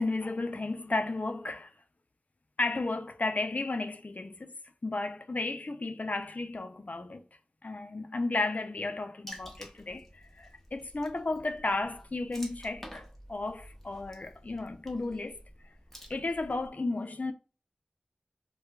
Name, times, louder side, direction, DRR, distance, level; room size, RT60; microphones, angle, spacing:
voice 1, 0.0-1.7 2.6-4.5 4.8-7.2 7.6-15.4 16.1-17.3, left 2 dB, 60° left, 0.4 m, -33 dB
Water / Splash splatter, 9.3-16.7, equal, 10° left, 0.9 m, -50 dB
4.3 x 2.2 x 2.2 m
wide cardioid pair, 40°, 3 cm